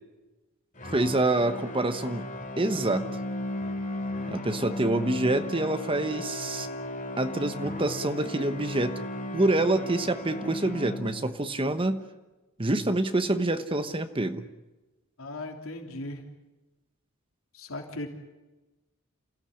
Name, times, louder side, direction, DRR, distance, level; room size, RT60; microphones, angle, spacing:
sound 1, 0.8-11.5, left 1 dB, 40° left, 2.7 m, -36 dB
voice 1, 0.9-2.3 2.6-3.1 4.3-6.7 7.2-9.0 9.3-12.0 12.6-14.4, right 2 dB, 25° right, 9 dB, 1.1 m, -26 dB
voice 2, 15.2-16.2 17.5-18.1, left 2 dB, 80° left, 4 dB, 3.3 m, -37 dB
28.5 x 16.0 x 9.9 m, 1.1 s
head